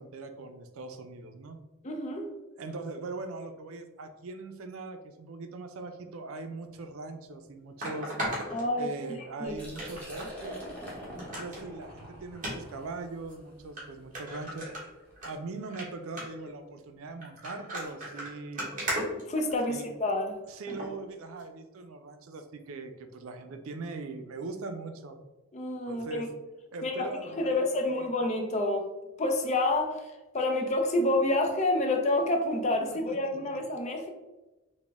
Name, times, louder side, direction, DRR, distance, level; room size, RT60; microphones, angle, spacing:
voice 1, 0.0-1.6 2.6-8.1 8.8-10.6 11.4-14.7 15.2-18.7 19.7-19.8 20.5-25.2 25.9-26.3 26.7-28.1 32.9-33.2, right 3 dB, 90° right, 8 dB, 0.4 m, -41 dB
voice 2, 1.8-2.3 8.5-8.9 9.4-9.5 19.3-20.4 25.5-26.3 26.8-27.1 27.4-28.9 29.2-34.1, left 2 dB, 35° left, 3 dB, 0.5 m, -28 dB
sound 1, 6.7-6.8 7.8-9.2 9.7-10.3 10.7-10.8 11.2-11.6 12.3-12.5 13.3-13.4 13.8-13.9 14.1-15.3 15.6-15.8 16.2-16.5 17.2-19.9 20.7-20.9 21.4-21.5, right 1 dB, 40° right, 1.2 m, -36 dB
Liquid, 9.5-15.2, equal, 5° left, 1.0 m, -45 dB
4.0 x 2.1 x 3.4 m, 1.1 s
head